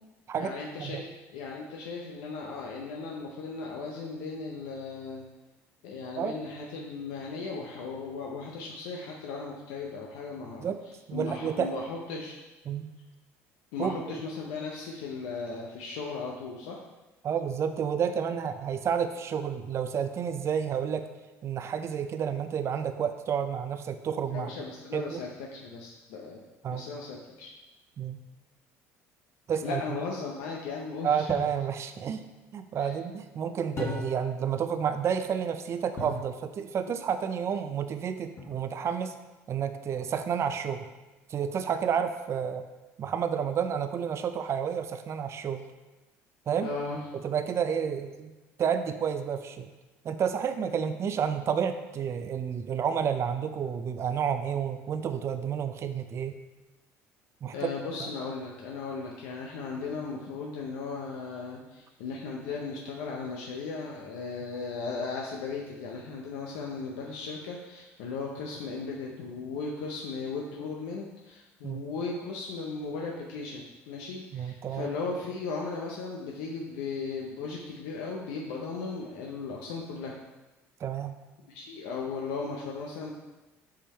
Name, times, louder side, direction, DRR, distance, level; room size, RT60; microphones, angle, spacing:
voice 1, 0.4-5.2 5.8-10.7 11.1-12.4 13.7-16.8 24.3-27.5 29.6-31.3 32.8-32.9 46.6-47.0 57.5-80.2 81.5-83.1, left 4 dB, 85° left, -1 dB, 0.7 m, -37 dB
voice 2, 11.1-11.7 12.7-12.9 13.8-13.9 17.2-21.1 21.4-24.5 24.9-25.2 26.6-26.8 28.0-28.2 29.5-30.0 31.0-32.2 32.5-39.1 39.5-40.9 41.3-42.6 43.0-45.6 46.5-46.7 47.1-48.3 48.6-49.7 50.0-56.4 57.4-57.7 58.0-58.1 71.6-71.8 74.3-74.9 80.8-81.1, right 7 dB, 45° right, 8 dB, 0.5 m, -30 dB
sound 1, 31.3-31.6 33.8-34.4 36.0-36.3 38.4-38.9, left 2 dB, 35° left, 1.6 m, -37 dB
5.6 x 5.0 x 4.3 m, 1.1 s
supercardioid pair, 85°, 7 cm